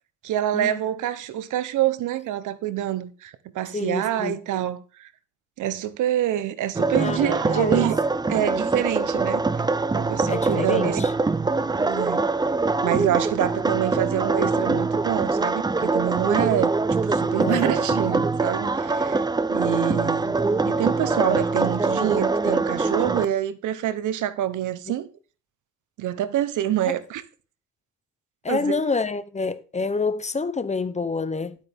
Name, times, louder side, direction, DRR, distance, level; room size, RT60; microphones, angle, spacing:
voice 1, 0.2-5.1 5.6-8.0 8.3-9.4 9.9-11.0 11.8-12.2 12.8-19.2 19.5-20.4 20.6-25.1 26.0-27.2 28.5-28.8, right 12 dB, 80° right, 1.0 m, -26 dB
voice 2, 3.7-4.4 7.0-7.9 10.3-11.1 17.4-17.8 24.9-25.0 28.4-31.6, left 4 dB, 25° left, 1.0 m, -27 dB
sound 1, 6.7-23.2, right 3 dB, 15° right, 0.5 m, -23 dB
11.5 x 8.5 x 3.6 m
cardioid pair, 90°, 30 cm